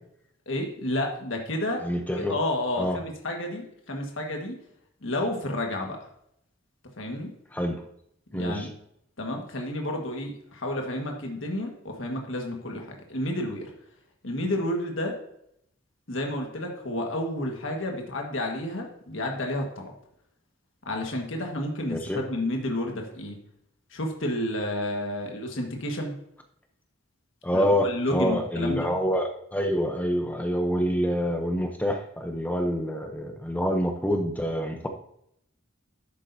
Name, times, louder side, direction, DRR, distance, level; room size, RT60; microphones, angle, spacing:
voice 1, 0.4-1.8 2.2-4.5 5.0-6.0 7.0-7.3 8.3-8.7 9.2-13.7 14.2-15.2 16.1-19.9 20.8-23.4 23.9-26.1 27.5-28.9, left 1 dB, 70° left, 1 dB, 1.6 m, -30 dB
voice 2, 1.8-2.3 2.8-3.0 7.5-7.8 8.3-8.7 21.9-22.2 27.4-34.9, equal, 10° left, 4 dB, 0.7 m, -27 dB
11.5 x 8.4 x 2.7 m, 0.74 s
head